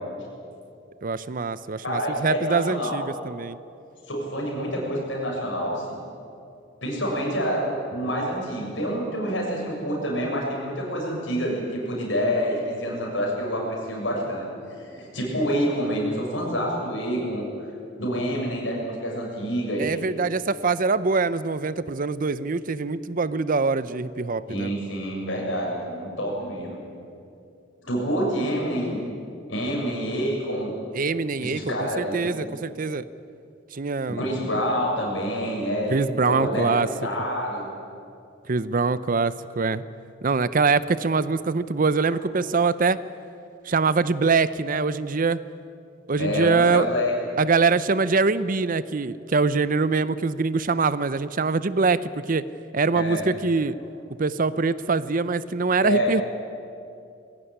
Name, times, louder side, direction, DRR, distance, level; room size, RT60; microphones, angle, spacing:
voice 1, 1.0-3.6 19.8-24.7 30.9-33.0 33.7-34.2 35.9-36.9 38.5-39.8 40.2-43.0 43.6-45.4 46.1-46.9 47.4-52.4 52.7-53.8 54.2-56.2, right 4 dB, 45° right, 16 dB, 0.6 m, -23 dB
voice 2, 1.8-3.1 4.1-6.0 6.8-17.5 18.0-19.9 24.5-26.8 27.8-29.0 29.5-30.7 31.4-32.4 34.1-36.0 36.2-37.7 46.2-47.1 52.9-53.3 55.8-56.1, equal, 70° left, -2 dB, 6.9 m, -27 dB
21.0 x 16.5 x 10.0 m, 2.5 s
head